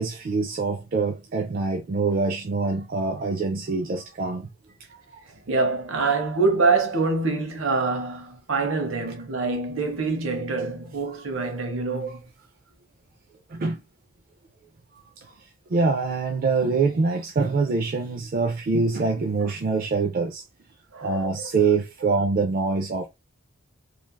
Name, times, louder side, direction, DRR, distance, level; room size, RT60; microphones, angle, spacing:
voice 1, 0.0-4.5 4.9-5.0 11.0-11.2 13.5-13.8 15.7-20.4 21.0-23.1, right 4 dB, 45° right, 0.3 m, -24 dB
voice 2, 5.5-12.2 20.9-21.5, right 4 dB, 65° right, 0.8 m, -25 dB
3.1 x 2.3 x 2.2 m
head